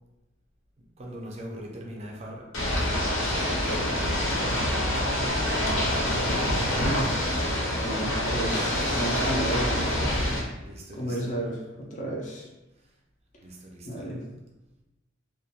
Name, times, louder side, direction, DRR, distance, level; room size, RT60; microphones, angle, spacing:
voice 1, 1.0-2.5 2.9-3.5 4.4-5.6 10.6-11.3 13.4-14.0, equal, 30° right, -1 dB, 0.4 m, -42 dB
Ocean / Boat Water vehicle, 2.5-10.4, left 1 dB, 75° left, 0.6 m, -26 dB
voice 2, 6.7-7.6 7.8-10.2 11.0-12.5 13.8-14.2, right 1 dB, 35° left, -1 dB, 0.4 m, -33 dB
2.2 x 2.1 x 2.8 m, 0.99 s
head